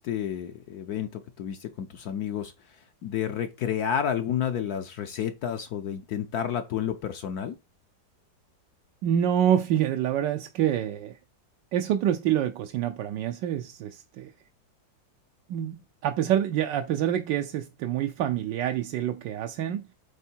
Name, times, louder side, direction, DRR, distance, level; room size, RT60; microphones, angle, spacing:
voice 1, 0.0-2.5 3.0-7.5, left 9 dB, 65° left, 1.0 m, -30 dB
voice 2, 9.0-11.2 11.7-14.3 15.5-19.9, right 10 dB, 80° right, 1.2 m, -27 dB
8.3 x 3.6 x 4.4 m
omnidirectional pair, 2.0 m